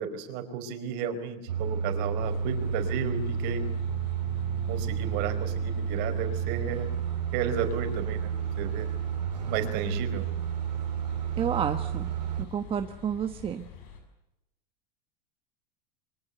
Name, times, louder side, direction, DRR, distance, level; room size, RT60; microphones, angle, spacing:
voice 1, 0.0-3.7 4.7-6.9 7.3-8.9 9.5-10.3, right 7 dB, 55° right, 8 dB, 4.5 m, -33 dB
sound 1, 1.5-12.5, right 8 dB, 90° right, 2.6 m, -31 dB
sound 2, 2.2-14.0, left 7 dB, 60° left, 7.2 m, -44 dB
voice 2, 11.4-12.1 12.5-13.6, right 8 dB, 25° right, 7 dB, 1.3 m, -30 dB
26.0 x 23.5 x 8.1 m, 0.91 s
hypercardioid pair, 110°, 21 cm